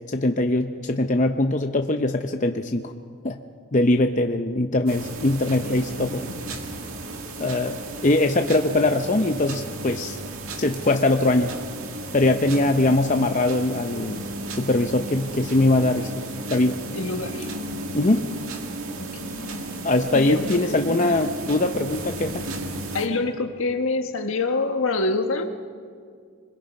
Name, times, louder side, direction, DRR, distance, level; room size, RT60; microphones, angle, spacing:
voice 1, 0.1-2.9 3.2-3.4 3.7-6.2 7.4-10.2 10.6-11.6 12.1-14.2 14.6-16.1 16.5-16.8 17.9-18.3 19.8-22.4, left 2 dB, 35° left, 5 dB, 0.7 m, -22 dB
sound 1, 4.9-23.1, right 2 dB, 75° right, 2.0 m, -34 dB
voice 2, 5.6-6.7 15.8-16.1 16.9-17.5 19.2-19.6 20.1-21.3 22.9-25.5, left 3 dB, 65° left, 6 dB, 1.4 m, -27 dB
27.0 x 21.5 x 5.3 m, 2.1 s
head